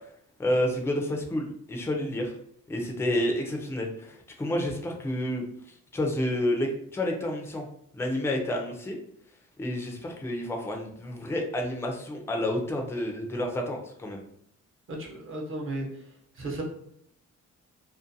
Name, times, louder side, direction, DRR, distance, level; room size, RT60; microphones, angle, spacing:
voice 1, 0.4-2.3 2.7-5.4 5.9-7.7 7.9-9.0 9.6-14.2, left 1 dB, 10° left, 2 dB, 0.4 m, -29 dB
voice 2, 14.9-15.9 16.3-16.6, right 2 dB, 40° right, -1 dB, 0.7 m, -34 dB
2.5 x 2.1 x 2.6 m, 0.71 s
cardioid pair, 110°, 32 cm